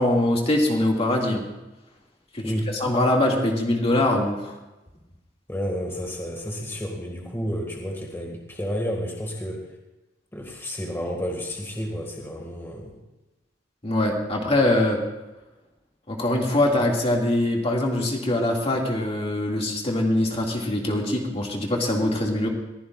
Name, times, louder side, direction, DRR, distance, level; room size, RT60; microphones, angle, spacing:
voice 1, 0.0-1.4 2.3-4.6 13.8-15.0 16.1-22.5, left 1 dB, 35° left, 0 dB, 2.2 m, -23 dB
voice 2, 2.4-2.7 5.5-9.7 10.3-13.0, equal, 15° left, 0 dB, 1.9 m, -31 dB
22.0 x 15.5 x 2.5 m, 1.0 s
head